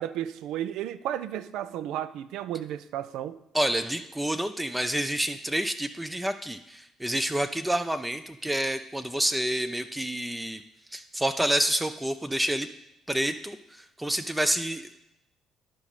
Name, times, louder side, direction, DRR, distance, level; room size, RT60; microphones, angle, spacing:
voice 1, 0.0-3.4, right 11 dB, 65° right, 13 dB, 0.4 m, -33 dB
voice 2, 3.5-10.6 10.9-12.7 13.1-15.0, right 1 dB, 10° right, 9 dB, 0.5 m, -28 dB
11.5 x 4.9 x 4.2 m, 0.85 s
figure-of-eight pair, 45°, 0 cm